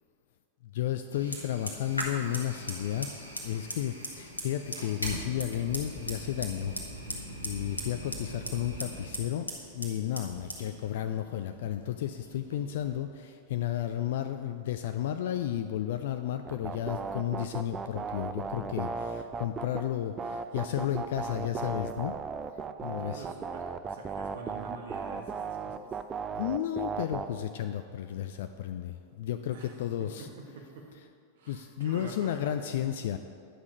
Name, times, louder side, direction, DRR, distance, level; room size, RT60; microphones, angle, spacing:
voice 1, 0.6-6.8 7.4-22.2 22.8-23.2 26.3-30.3 31.5-33.2, left 11 dB, 55° left, 8 dB, 0.3 m, -33 dB
Fire, 1.1-13.0, equal, 85° left, 1.1 m, -40 dB
sound 1, 16.5-19.8 20.2-27.3, right 5 dB, 20° right, 0.4 m, -36 dB
voice 2, 22.8-26.0 29.5-30.9 31.3-32.5, right 3 dB, 60° right, 1 dB, 1.4 m, -47 dB
9.4 x 6.0 x 5.0 m, 2.3 s
figure-of-eight pair, 90°, 0 cm